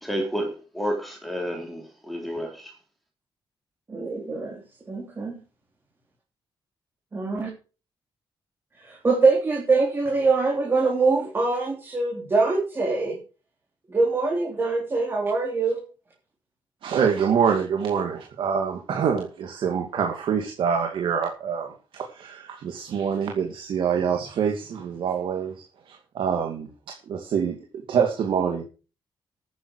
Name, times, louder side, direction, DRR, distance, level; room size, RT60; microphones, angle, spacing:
voice 1, 0.0-2.7, equal, ahead, 4.1 m, -30 dB
voice 2, 3.9-4.6 4.9-5.4 7.1-7.5 8.8-13.2 13.9-15.8, right 3 dB, 25° right, 3.7 m, -23 dB
voice 3, 16.8-27.6 27.9-28.6, right 7 dB, 70° right, 2.3 m, -26 dB
13.0 x 9.8 x 4.8 m
wide cardioid pair, 170°, 9 cm